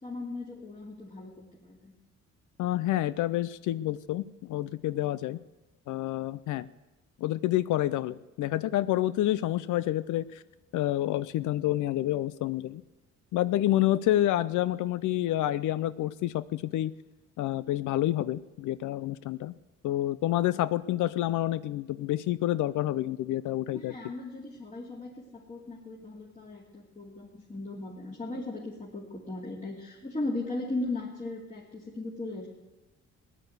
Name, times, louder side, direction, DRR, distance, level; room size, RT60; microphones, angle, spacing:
voice 1, 0.0-1.3 1.6-1.9 23.7-32.5, left 2 dB, 25° left, -4 dB, 2.6 m, -37 dB
voice 2, 2.6-5.4 5.9-6.7 7.2-10.4 10.7-12.8 13.3-16.9 17.4-19.5 19.8-24.0, left 14 dB, 80° left, 16 dB, 0.5 m, -28 dB
16.5 x 10.0 x 8.0 m, 1.1 s
cardioid pair, 90°, 30 cm